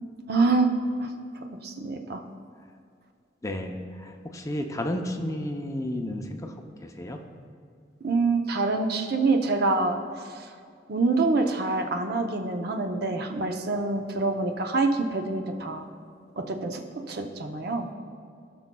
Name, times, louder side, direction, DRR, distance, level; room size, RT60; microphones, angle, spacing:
voice 1, 0.3-1.1 1.6-2.2 8.0-10.5 10.9-15.9 16.4-16.8 17.1-17.9, right 3 dB, 60° right, 4 dB, 0.7 m, -26 dB
voice 2, 3.4-6.6 6.8-7.2, left 1 dB, 20° left, 4 dB, 0.5 m, -32 dB
17.0 x 6.0 x 2.2 m, 2.3 s
head